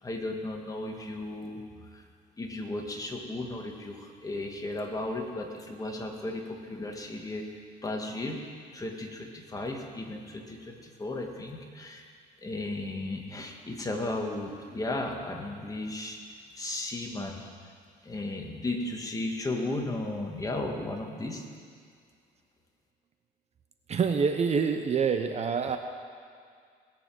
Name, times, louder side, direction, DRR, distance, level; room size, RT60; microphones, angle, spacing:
voice 1, 0.0-1.6 1.9-2.0 2.4-8.4 8.7-12.0 12.4-17.4 18.0-21.4, left 2 dB, 20° left, 1 dB, 2.0 m, -35 dB
voice 2, 23.9-25.8, right 6 dB, 40° right, 6 dB, 0.9 m, -26 dB
20.0 x 7.0 x 7.7 m, 2.1 s
cardioid pair, 110°, 17 cm